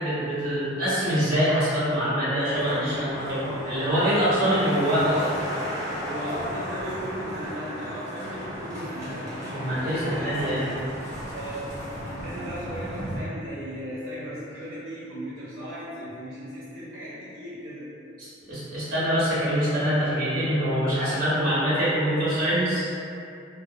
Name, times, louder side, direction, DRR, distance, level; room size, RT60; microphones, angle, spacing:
voice 1, 0.0-5.2 9.5-10.8 18.2-22.9, equal, 50° right, -10 dB, 0.9 m, -24 dB
sound 1, 2.4-13.2, equal, 15° right, 0.7 m, -34 dB
voice 2, 6.0-9.3 9.7-10.8 11.3-11.7 12.0-17.9, equal, 90° right, -8 dB, 0.5 m, -36 dB
2.2 x 2.1 x 2.7 m, 2.6 s
head